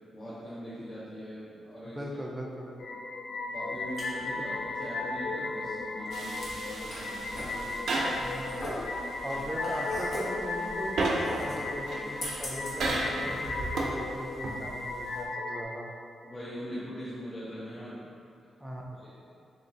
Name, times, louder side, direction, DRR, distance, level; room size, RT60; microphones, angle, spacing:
voice 1, 0.1-2.0 3.5-4.5 4.8-8.2 9.3-9.4 16.2-18.2 19.0-19.1, equal, 30° left, -12 dB, 0.7 m, -41 dB
voice 2, 1.8-2.7 4.4-4.5 8.2-8.7 9.2-15.9 18.6-18.8, equal, 10° right, -1 dB, 0.4 m, -39 dB
sound 1, 2.8-15.6, left 3 dB, 75° left, 0.3 m, -36 dB
sound 2, 3.5-13.9, equal, 60° left, 1.0 m, -41 dB
sound 3, 6.1-15.3, right 2 dB, 70° right, 0.5 m, -35 dB
3.1 x 2.6 x 3.8 m, 2.5 s
wide cardioid pair, 135°, 0 cm